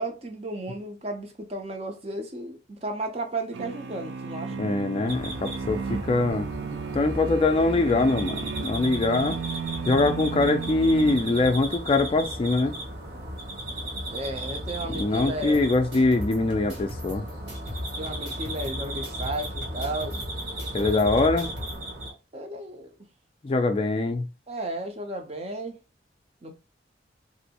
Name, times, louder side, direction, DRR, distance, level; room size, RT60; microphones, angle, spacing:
voice 1, 0.0-4.5 14.1-15.6 18.0-20.2 22.1-22.9 24.5-25.8 26.4-26.5, right 2 dB, 35° right, 0.5 m, -34 dB
sound 1, 3.5-11.9, right 6 dB, 90° right, 0.3 m, -35 dB
voice 2, 4.6-6.5 6.9-9.4 9.9-12.8 14.9-17.2 20.7-21.5 23.4-24.3, left 2 dB, 30° left, 0.3 m, -23 dB
sound 2, 5.1-22.1, right 1 dB, 50° right, 1.0 m, -35 dB
sound 3, 15.5-21.8, left 1 dB, 70° right, 1.4 m, -40 dB
3.0 x 2.6 x 2.8 m
head